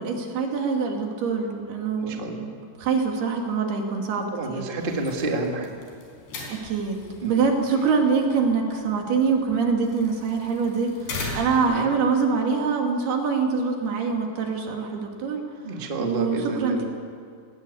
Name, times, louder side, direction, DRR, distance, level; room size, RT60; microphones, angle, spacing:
voice 1, 0.0-4.6 6.4-15.4 16.0-16.8, right 5 dB, 65° right, 2 dB, 4.3 m, -25 dB
voice 2, 2.0-2.5 4.3-5.7 7.2-7.4 11.7-11.8 15.6-16.8, right 2 dB, 35° right, 1 dB, 0.8 m, -29 dB
sound 1, 4.8-11.8, left 2 dB, 70° left, 6.1 m, -39 dB
21.0 x 18.5 x 8.5 m, 2.3 s
omnidirectional pair, 5.0 m